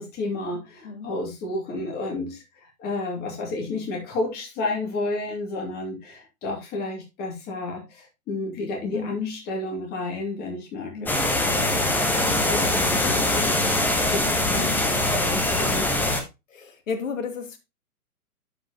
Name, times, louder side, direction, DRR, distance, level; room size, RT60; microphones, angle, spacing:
voice 1, 0.0-15.9, left 2 dB, 20° left, 1 dB, 2.3 m, -32 dB
sound 1, 11.1-16.2, left 1 dB, 5° left, 0.9 m, -23 dB
voice 2, 16.5-17.6, left 6 dB, 60° left, 7 dB, 2.2 m, -33 dB
12.0 x 4.8 x 2.9 m, 0.24 s
figure-of-eight pair, 125°, 45 cm